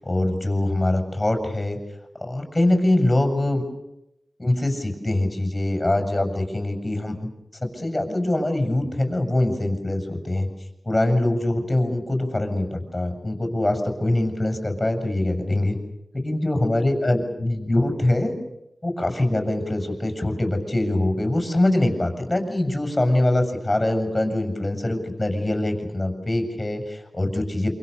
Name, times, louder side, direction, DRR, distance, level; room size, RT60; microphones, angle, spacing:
voice 1, 0.0-1.8 2.2-3.6 4.4-7.3 7.6-10.5 10.8-15.8 16.2-18.3 18.8-27.7, left 1 dB, 15° left, 5 dB, 7.3 m, -23 dB
27.5 x 26.0 x 7.0 m, 0.85 s
wide cardioid pair, 70°, 0 cm